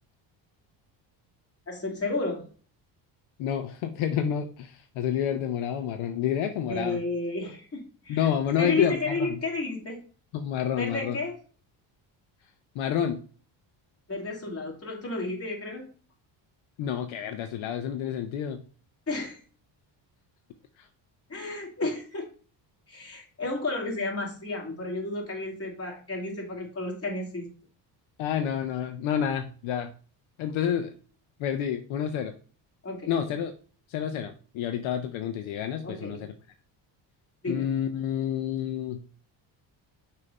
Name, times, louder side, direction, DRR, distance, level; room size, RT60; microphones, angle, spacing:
voice 1, 1.7-2.4 6.7-8.3 8.6-10.0 10.8-11.4 14.1-15.8 19.1-19.4 21.3-22.2 22.9-27.5 32.8-33.1 35.8-36.2 37.4-37.7, left 2 dB, 30° left, -1 dB, 2.6 m, -32 dB
voice 2, 3.4-7.0 8.1-9.4 10.3-11.2 12.7-13.2 16.8-18.6 20.8-20.9 28.2-29.9 30.4-30.9 31.4-32.3 33.1-33.5 33.9-36.3 37.5-39.0, left 9 dB, 75° left, 7 dB, 0.7 m, -29 dB
6.3 x 2.8 x 5.2 m, 0.40 s
cardioid pair, 110°, 48 cm